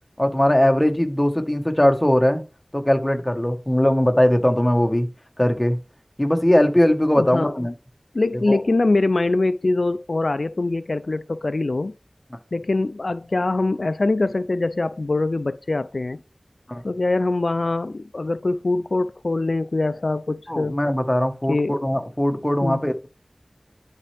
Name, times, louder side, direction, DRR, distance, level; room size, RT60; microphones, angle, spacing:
voice 1, 0.2-2.4 2.7-5.1 5.4-5.8 6.2-7.7 8.5-8.6 16.7-16.8 20.5-23.1, left 1 dB, 20° left, 1.4 m, -20 dB
voice 2, 7.2-7.5 8.1-11.9 12.5-16.2 16.8-20.8 21.5-21.8 22.6-22.8, left 2 dB, 80° left, 0.3 m, -23 dB
11.0 x 4.3 x 3.4 m
wide cardioid pair, 40°, 0 cm